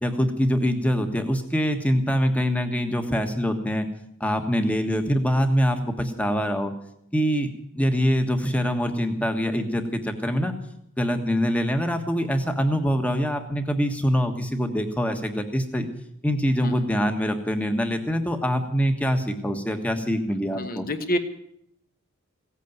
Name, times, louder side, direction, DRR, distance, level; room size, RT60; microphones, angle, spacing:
voice 1, 0.0-3.9 4.2-6.7 7.1-10.5 11.0-15.9 16.2-20.8, equal, 5° left, 6 dB, 1.4 m, -24 dB
voice 2, 20.5-21.2, equal, 40° left, 8 dB, 1.3 m, -28 dB
17.0 x 8.5 x 9.2 m, 0.75 s
head